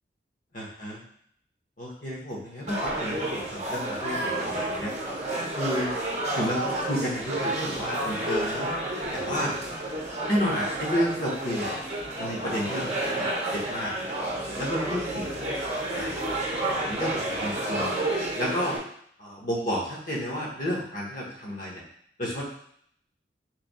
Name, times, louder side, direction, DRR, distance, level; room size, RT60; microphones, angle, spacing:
voice 1, 0.5-1.0 1.8-4.9 5.6-5.9 6.3-8.7 9.1-9.5 10.3-11.7 12.2-13.9 14.6-15.6 15.9-16.2 16.7-17.9 18.3-18.8 19.2-21.8 22.2-22.4, equal, 50° left, -3 dB, 1.0 m, -31 dB
sound 1, 2.7-18.8, right 1 dB, 40° right, 0.7 m, -30 dB
3.2 x 2.8 x 4.0 m, 0.66 s
head